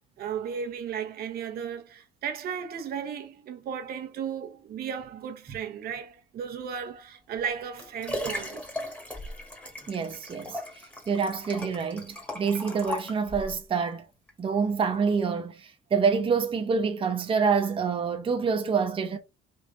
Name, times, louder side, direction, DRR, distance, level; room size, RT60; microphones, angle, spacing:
voice 1, 0.2-8.7, right 7 dB, 65° right, 0.8 m, -35 dB
Liquid, 7.4-13.6 14.3-14.4, left 1 dB, 10° left, 1.2 m, -37 dB
voice 2, 9.9-10.6 11.1-14.0 14.4-19.2, right 5 dB, 30° right, 0.7 m, -27 dB
3.6 x 2.6 x 3.8 m
cardioid pair, 110°, 17 cm